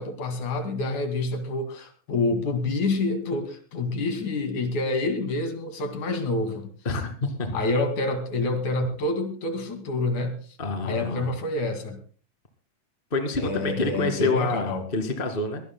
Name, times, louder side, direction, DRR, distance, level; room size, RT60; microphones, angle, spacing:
voice 1, 0.0-6.7 7.5-10.4 10.8-12.0 13.4-14.9, left 2 dB, 80° left, 7 dB, 3.8 m, -27 dB
voice 2, 6.9-7.5 10.6-11.3 13.1-15.6, left 3 dB, 20° left, 6 dB, 2.0 m, -27 dB
23.0 x 17.0 x 2.2 m, 0.38 s
omnidirectional pair, 3.4 m